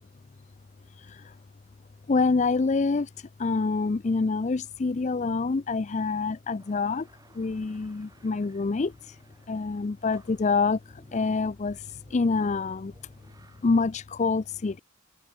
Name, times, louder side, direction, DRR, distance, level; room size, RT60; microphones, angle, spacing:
voice 1, 2.1-3.1 3.4-7.1 7.4-9.2 9.5-10.8 11.1-12.9 13.6-14.8, left 4 dB, 35° left, 0.4 m, -26 dB
sound 1, 6.6-13.8, right 1 dB, 15° right, 3.2 m, -57 dB
head